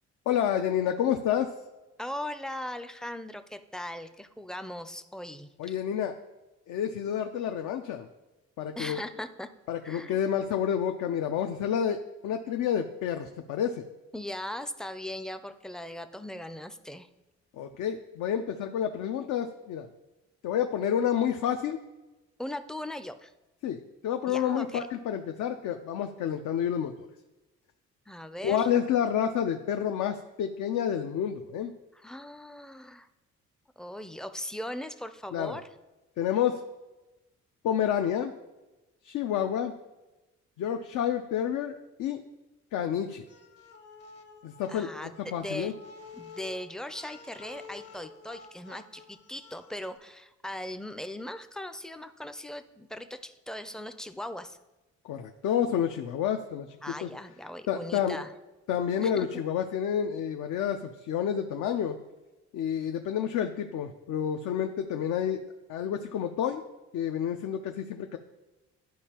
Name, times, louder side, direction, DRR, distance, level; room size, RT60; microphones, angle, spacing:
voice 1, 0.3-1.5 5.6-6.1 6.7-8.1 8.6-9.0 9.7-13.8 17.5-19.9 20.4-21.8 23.6-27.1 28.4-31.7 35.3-35.6 36.2-36.6 37.6-38.3 39.0-39.7 40.6-42.2 42.7-43.3 44.4-45.7 55.0-57.1 57.7-58.2 58.7-62.0 62.5-65.4 65.7-66.6 66.9-68.2, left 9 dB, 75° left, 5 dB, 0.5 m, -29 dB
voice 2, 2.0-5.7 8.8-9.5 9.8-10.2 14.1-17.1 22.4-23.3 24.3-24.9 28.1-28.7 31.9-33.1 33.8-35.7 44.7-45.7 46.1-54.6 56.8-58.4 59.0-59.4, left 1 dB, ahead, 10 dB, 0.4 m, -39 dB
sound 1, 43.3-50.0, left 5 dB, 55° left, 1.0 m, -50 dB
12.0 x 4.5 x 2.9 m, 1.1 s
cardioid pair, 90°, 30 cm